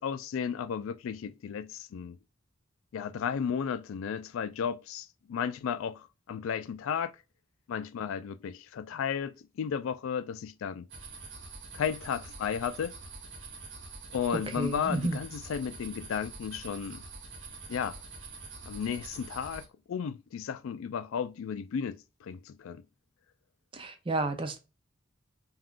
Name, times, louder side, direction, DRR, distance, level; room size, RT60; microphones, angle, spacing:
voice 1, 0.0-2.2 2.9-7.1 7.7-10.9 11.7-12.9 14.1-17.0 17.7-18.0 18.6-22.8, left 7 dB, 85° left, 0.3 m, -34 dB
sound 1, 10.9-19.7, right 3 dB, 65° right, 0.9 m, -45 dB
voice 2, 14.6-15.2 23.7-24.6, right 2 dB, 25° right, 0.4 m, -31 dB
3.6 x 2.3 x 2.4 m
head